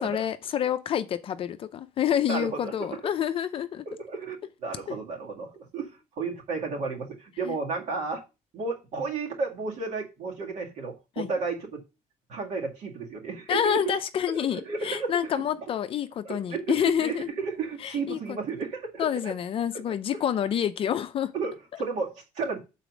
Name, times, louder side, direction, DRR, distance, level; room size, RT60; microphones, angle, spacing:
voice 1, 0.0-3.8 7.4-7.5 11.2-11.3 13.5-17.3 17.8-18.4 19.0-21.3, left 9 dB, 40° left, 0.5 m, -28 dB
voice 2, 2.3-3.0 3.9-4.4 4.6-5.9 6.2-8.2 8.5-11.8 12.3-14.0 14.3-15.4 16.2-19.3 19.9-20.0 21.3-22.6, right 4 dB, 55° right, 2.1 m, -33 dB
6.9 x 4.2 x 6.1 m
cardioid pair, 165°, 14 cm